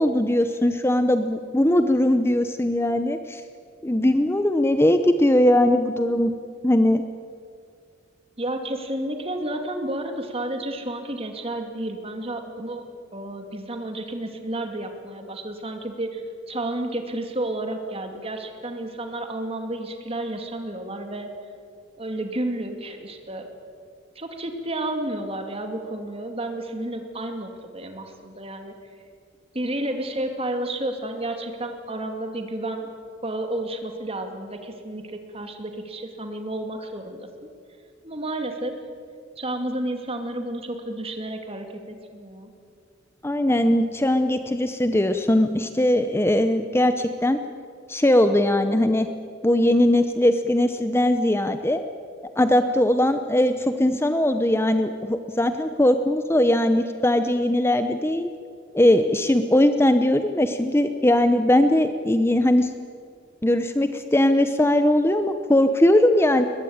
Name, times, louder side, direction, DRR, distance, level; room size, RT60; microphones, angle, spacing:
voice 1, 0.0-3.4 3.8-6.4 6.6-7.0 43.2-47.4 47.9-49.1 49.4-51.8 52.4-58.3 58.7-62.7 63.4-66.4, left 1 dB, 15° left, 9 dB, 0.8 m, -20 dB
voice 2, 8.4-12.8 13.1-16.2 16.5-21.3 22.0-23.5 24.2-28.7 29.5-32.9 33.2-37.3 38.0-38.8 39.4-42.5, right 1 dB, 30° right, 5 dB, 2.5 m, -31 dB
21.5 x 21.5 x 8.8 m, 2.2 s
head